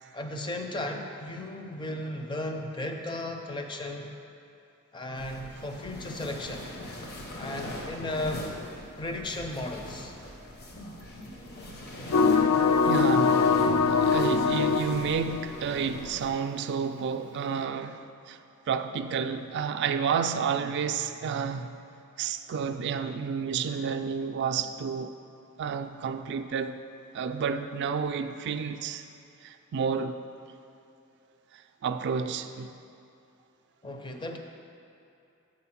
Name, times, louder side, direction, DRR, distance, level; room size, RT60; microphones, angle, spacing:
voice 1, 0.1-4.1 4.9-6.6 7.4-8.5 9.0-10.1 33.8-34.4, left 1 dB, 20° left, 0.5 m, -35 dB
sound 1, 5.2-16.3, left 1 dB, 50° left, 0.9 m, -41 dB
sound 2, 12.1-16.0, left 5 dB, 75° left, 0.4 m, -23 dB
voice 2, 12.8-18.4 18.7-21.8 22.2-25.2 25.6-26.8 27.1-29.0 29.4-30.2 31.5-32.7, right 6 dB, 55° right, 0.3 m, -31 dB
7.7 x 4.4 x 5.8 m
head